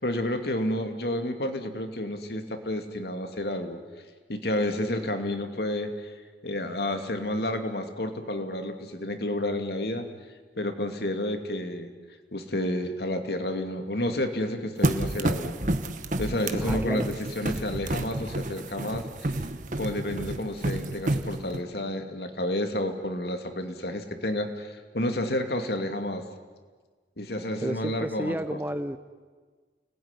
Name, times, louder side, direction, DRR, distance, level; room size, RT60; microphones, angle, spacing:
voice 1, 0.0-3.8 4.3-6.1 6.4-10.1 10.6-11.9 12.3-15.6 16.2-19.3 19.8-26.2 27.2-28.4, left 1 dB, 60° left, 6 dB, 2.6 m, -30 dB
sound 1, 14.8-21.6, right 1 dB, 45° right, 1.4 m, -30 dB
voice 2, 16.6-17.1 27.6-29.0, right 1 dB, 10° right, 11 dB, 0.8 m, -31 dB
30.0 x 20.0 x 9.9 m, 1.4 s
head